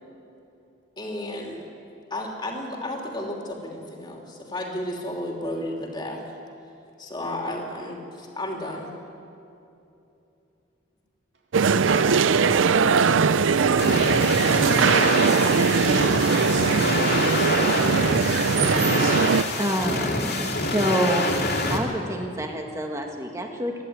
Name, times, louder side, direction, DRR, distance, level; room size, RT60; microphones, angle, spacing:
voice 1, 1.0-1.7 2.1-6.2 7.0-8.9, left 1 dB, 25° left, 0 dB, 3.0 m, -32 dB
sound 1, 11.5-19.4, right 5 dB, 80° right, 0.5 m, -20 dB
voice 2, 11.9-18.8, right 2 dB, 60° right, 0 dB, 3.1 m, -37 dB
sound 2, 13.8-21.8, left 2 dB, 55° left, 2.7 m, -26 dB
voice 3, 19.6-21.3 21.7-23.8, right 1 dB, 15° right, 2 dB, 2.0 m, -27 dB
27.0 x 11.0 x 9.5 m, 2.8 s
head